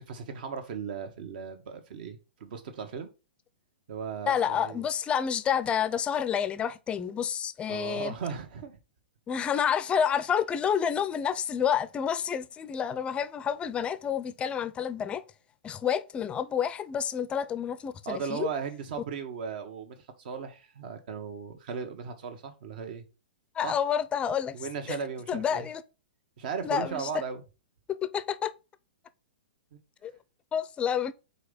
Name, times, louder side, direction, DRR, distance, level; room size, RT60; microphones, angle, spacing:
voice 1, 0.0-3.1 3.9-4.8 7.7-8.7 18.0-23.0 23.6-23.8 24.5-25.7 26.4-27.4 29.7-29.8, right 6 dB, 60° right, 1.4 m, -37 dB
voice 2, 4.3-8.1 9.3-15.2 15.6-18.5 23.6-24.5 25.3-25.8 26.6-27.1 27.9-28.5 30.0-30.1 30.5-31.1, left 8 dB, 20° left, 0.5 m, -29 dB
4.7 x 4.1 x 5.2 m
hypercardioid pair, 125°, 6 cm